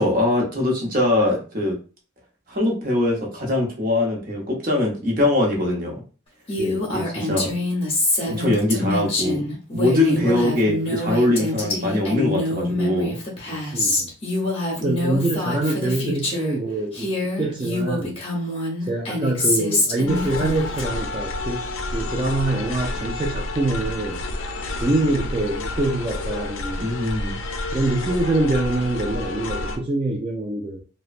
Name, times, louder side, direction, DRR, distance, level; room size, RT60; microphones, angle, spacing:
voice 1, 0.0-1.7 2.5-6.0 6.9-7.5 8.2-13.2 26.8-27.4, left 1 dB, 45° right, -1 dB, 0.8 m, -22 dB
Female speech woman speaking, 6.5-16.6 16.9-20.8, left 2 dB, 30° left, 0.7 m, -25 dB
voice 2, 6.6-6.9 7.3-7.6 8.6-8.9 10.3-10.6 13.5-14.1 14.8-17.1 17.4-18.2 18.9-21.6 21.9-24.2 24.8-26.8 27.7-30.8, right 2 dB, 25° right, -3 dB, 0.3 m, -25 dB
sound 1, 20.1-29.8, left 2 dB, 80° left, 0.4 m, -29 dB
2.9 x 2.1 x 2.4 m, 0.37 s
head